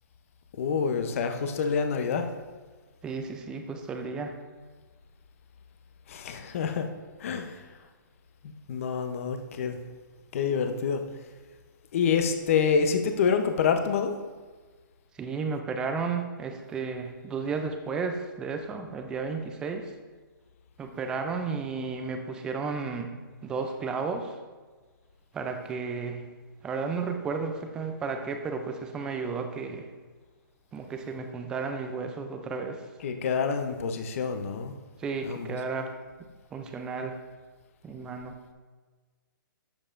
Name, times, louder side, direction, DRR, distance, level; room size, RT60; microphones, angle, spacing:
voice 1, 0.6-2.3 6.1-6.9 7.2-7.6 8.4-9.8 10.3-11.0 11.9-14.1 33.0-34.7 35.2-35.6, left 6 dB, 40° left, 6 dB, 0.7 m, -27 dB
voice 2, 3.0-4.3 15.2-19.9 20.8-23.1 23.4-24.4 25.3-26.3 26.6-29.8 30.7-32.8 35.0-35.9 36.5-37.2 37.8-38.4, right 4 dB, 5° right, 5 dB, 0.4 m, -33 dB
12.0 x 7.7 x 2.5 m, 1.4 s
hypercardioid pair, 165°, 11 cm